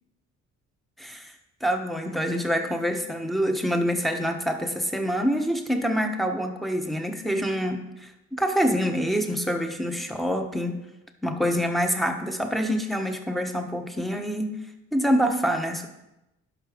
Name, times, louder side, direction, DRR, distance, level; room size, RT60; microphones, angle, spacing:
voice 1, 1.0-1.3 1.6-10.8 11.2-14.5 14.9-15.9, equal, ahead, 5 dB, 1.2 m, -26 dB
11.0 x 5.8 x 5.1 m, 0.92 s
cardioid pair, 90°, 30 cm